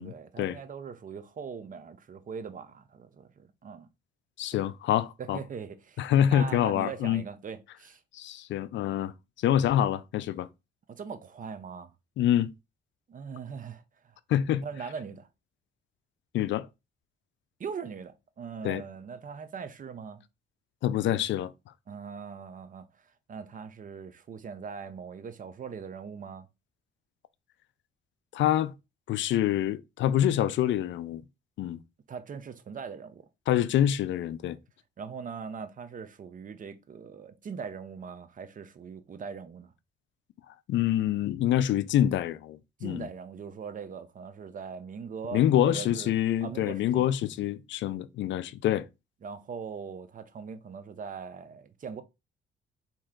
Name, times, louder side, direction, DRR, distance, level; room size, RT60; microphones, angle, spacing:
voice 1, 0.0-3.9 4.5-4.6 5.2-8.0 10.9-11.9 13.1-14.2 14.6-15.3 17.6-20.2 21.9-26.5 32.1-33.2 35.0-39.7 42.8-47.1 49.2-52.0, right 6 dB, 40° right, 0.7 m, -41 dB
voice 2, 4.4-5.4 6.0-7.2 8.1-9.1 9.4-10.5 12.2-12.5 14.3-14.6 16.3-16.7 18.6-18.8 20.8-21.5 28.3-28.7 29.1-31.2 31.6-31.8 33.5-34.6 40.7-43.1 45.3-48.9, left 11 dB, 70° left, 0.4 m, -26 dB
4.3 x 2.9 x 3.7 m
cardioid pair, 90°, 20 cm